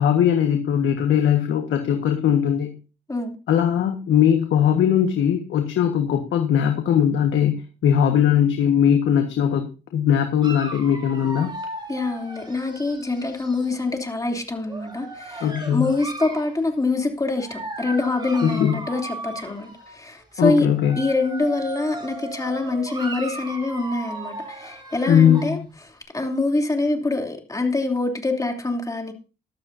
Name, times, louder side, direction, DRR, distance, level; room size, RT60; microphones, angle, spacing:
voice 1, 0.0-2.8 3.5-11.5 15.4-15.9 18.4-18.8 20.4-21.0 25.1-25.7, left 9 dB, 70° left, 1.5 m, -20 dB
Dog, 10.4-13.8 14.6-16.6 17.4-20.0 20.7-25.6, right 2 dB, 20° right, 4.3 m, -36 dB
voice 2, 11.9-20.7 21.0-25.6 25.9-29.1, left 2 dB, 15° left, 3.0 m, -25 dB
14.5 x 12.0 x 2.7 m
cardioid pair, 90°, 20 cm